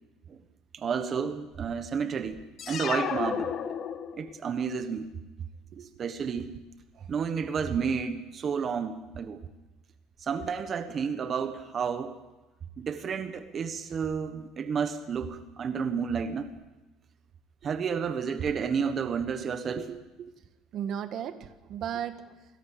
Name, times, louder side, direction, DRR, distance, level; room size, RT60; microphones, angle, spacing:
voice 1, 0.7-2.4 2.7-3.5 4.1-5.1 5.8-6.5 7.1-9.4 10.2-12.2 12.8-16.5 17.6-19.9, right 6 dB, 35° right, 9 dB, 1.3 m, -31 dB
sound 1, 2.6-4.4, left 8 dB, 45° left, 1.7 m, -32 dB
voice 2, 19.7-20.3 20.7-22.3, right 9 dB, 55° right, 10 dB, 1.4 m, -36 dB
23.5 x 17.5 x 6.9 m, 1.1 s
cardioid pair, 120°, 0 cm